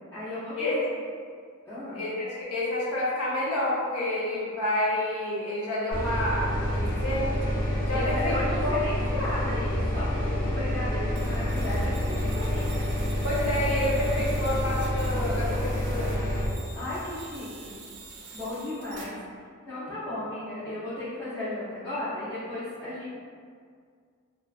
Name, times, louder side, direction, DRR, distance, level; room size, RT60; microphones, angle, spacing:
voice 1, 0.1-0.9 1.7-2.0 7.9-13.2 16.7-17.8 18.3-23.1, left 1 dB, 10° left, -15 dB, 0.5 m, -35 dB
voice 2, 1.9-7.3 7.6-8.3 8.6-8.7 13.2-16.3, left 1 dB, 90° left, -6 dB, 0.7 m, -29 dB
sound 1, 5.9-16.5, equal, 45° left, 0.7 m, -28 dB
sound 2, 11.2-19.0, right 3 dB, 55° right, 0.4 m, -46 dB
2.5 x 2.2 x 2.3 m, 2.1 s
head